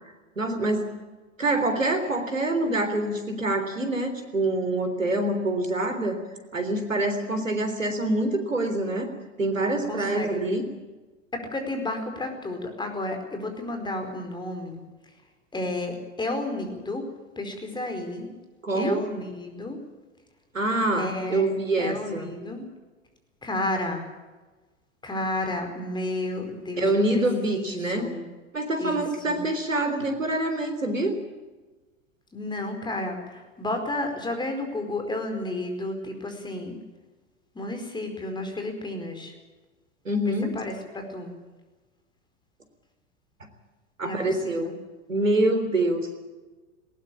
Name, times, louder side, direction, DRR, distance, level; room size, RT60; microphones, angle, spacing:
voice 1, 0.4-0.9 1.4-6.2 6.5-9.1 9.4-10.7 18.6-19.0 20.5-22.3 26.8-28.1 28.5-31.2 40.1-40.5 44.0-44.7 45.1-46.1, right 1 dB, 85° right, 7 dB, 3.6 m, -25 dB
voice 2, 9.9-10.4 11.3-14.8 15.5-17.0 17.4-18.3 18.7-19.8 20.9-21.5 21.8-22.6 23.4-24.1 25.0-27.2 27.7-28.2 28.8-29.4 32.3-36.8 37.5-39.3 40.2-41.3 44.0-44.7, left 2 dB, 10° left, 5 dB, 4.8 m, -32 dB
19.5 x 18.0 x 8.6 m, 1.2 s
figure-of-eight pair, 90°, 38 cm